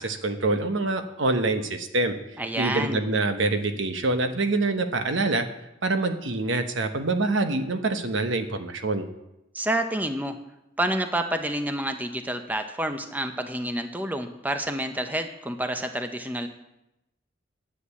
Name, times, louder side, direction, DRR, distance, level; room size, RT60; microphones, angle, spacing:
voice 1, 0.0-2.1 2.6-5.5 5.8-9.1, right 2 dB, 75° right, 8 dB, 1.1 m, -25 dB
voice 2, 2.4-3.0 9.5-10.4 10.8-16.5, right 1 dB, 10° right, 6 dB, 0.8 m, -28 dB
10.0 x 7.8 x 8.3 m, 0.89 s
head